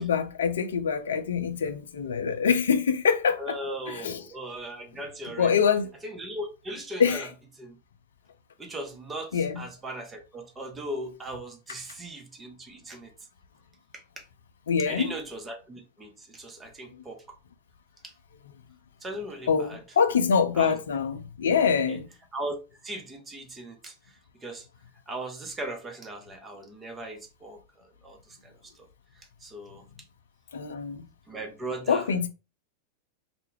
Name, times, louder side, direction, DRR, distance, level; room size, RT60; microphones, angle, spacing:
voice 1, 0.0-3.6 3.9-4.2 5.4-5.9 7.0-7.3 9.3-9.6 14.7-15.1 19.5-22.1 30.5-31.1 31.9-32.3, left 6 dB, 65° left, 0.3 m, -25 dB
voice 2, 3.4-5.5 6.0-7.3 7.6-7.8 8.6-13.1 13.9-14.2 14.8-17.2 18.0-18.1 19.0-19.8 20.5-20.8 21.9-22.0 22.3-24.7 25.1-28.9 29.2-29.8 31.3-32.1, right 1 dB, 15° right, 0.7 m, -38 dB
2.2 x 2.0 x 3.0 m
figure-of-eight pair, 90°, 0 cm